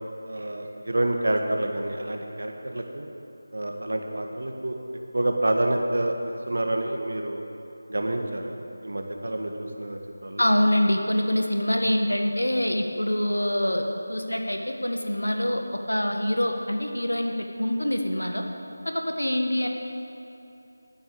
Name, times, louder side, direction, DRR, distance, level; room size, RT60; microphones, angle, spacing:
voice 1, 0.2-3.1 3.5-4.8 5.1-6.2 6.5-7.5 7.9-10.4, right 1 dB, 65° right, 3 dB, 1.9 m, -28 dB
voice 2, 10.4-13.8 14.1-15.6 15.9-18.4 19.1-19.7, left 1 dB, 90° left, 3 dB, 1.8 m, -25 dB
13.0 x 9.3 x 8.8 m, 2.9 s
figure-of-eight pair, 165°, 0 cm